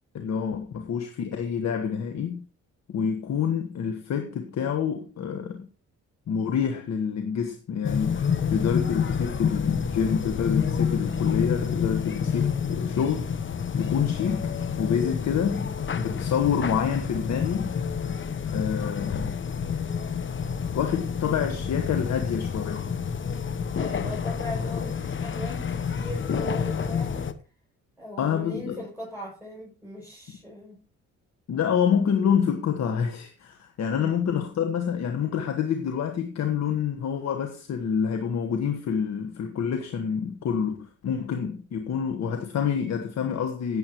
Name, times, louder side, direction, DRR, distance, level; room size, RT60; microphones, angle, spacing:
voice 1, 0.1-2.4 2.9-5.7 6.3-13.3 13.8-17.7 18.5-19.4 20.7-22.9 28.2-28.8 31.5-43.8, left 7 dB, 60° left, 1.4 m, -27 dB
sound 1, 7.8-27.3, left 6 dB, 40° left, 1.0 m, -28 dB
voice 2, 23.8-27.3 28.0-30.8 34.0-34.2, equal, 5° right, 6.6 m, -39 dB
16.5 x 7.8 x 3.0 m
cardioid pair, 90°, 30 cm